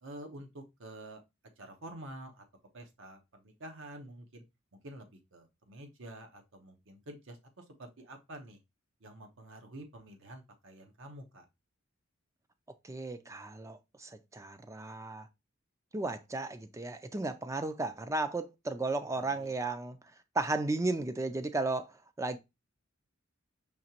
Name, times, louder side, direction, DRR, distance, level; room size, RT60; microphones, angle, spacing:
voice 1, 0.0-1.2 1.6-2.4 2.7-4.4 4.8-8.6 9.0-11.5 19.1-19.5, right 1 dB, 65° right, 0.9 m, -48 dB
voice 2, 12.8-15.3 15.9-20.0 20.4-21.9 22.2-22.4, right 2 dB, 15° right, 0.4 m, -34 dB
5.1 x 2.9 x 2.9 m
head